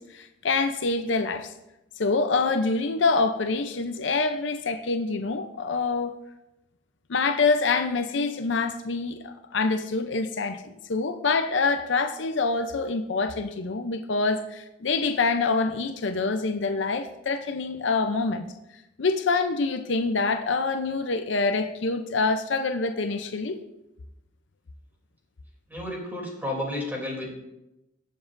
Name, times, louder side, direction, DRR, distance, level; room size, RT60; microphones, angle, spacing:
voice 1, 0.0-1.5 2.0-6.1 7.1-18.5 19.0-23.6, left 4 dB, 65° left, 8 dB, 0.6 m, -26 dB
voice 2, 25.7-27.3, left 1 dB, 10° right, -2 dB, 3.0 m, -32 dB
19.0 x 7.3 x 2.6 m, 0.91 s
head